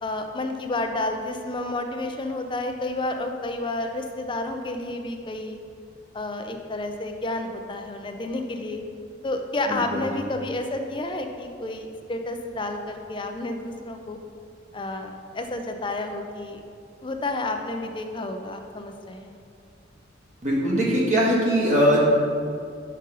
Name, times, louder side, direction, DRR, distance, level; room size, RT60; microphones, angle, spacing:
voice 1, 0.0-5.6 6.1-8.8 9.2-14.2 14.7-16.6 17.0-19.3, left 2 dB, 25° left, 5 dB, 0.5 m, -30 dB
voice 2, 9.7-10.0 20.4-22.0, equal, 40° right, -4 dB, 1.4 m, -21 dB
5.4 x 5.1 x 5.4 m, 2.4 s
head